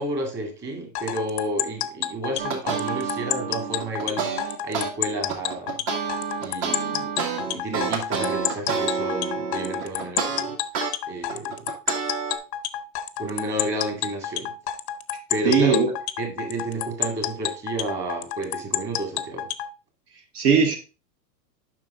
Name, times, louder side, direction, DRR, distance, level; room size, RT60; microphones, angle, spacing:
voice 1, 0.0-5.8 6.4-7.1 7.4-10.6 11.1-11.7 13.2-14.5 15.3-15.8 16.2-19.5, right 1 dB, 20° right, 2.1 m, -31 dB
sound 1, 0.9-19.7, left 12 dB, 40° left, 0.6 m, -29 dB
sound 2, 2.4-4.9 5.3-10.9 11.3-12.4, right 5 dB, 45° right, 2.0 m, -28 dB
voice 2, 15.4-15.9 20.3-20.8, right 5 dB, 65° right, 1.5 m, -19 dB
7.5 x 5.6 x 3.7 m
hypercardioid pair, 140°, 50 cm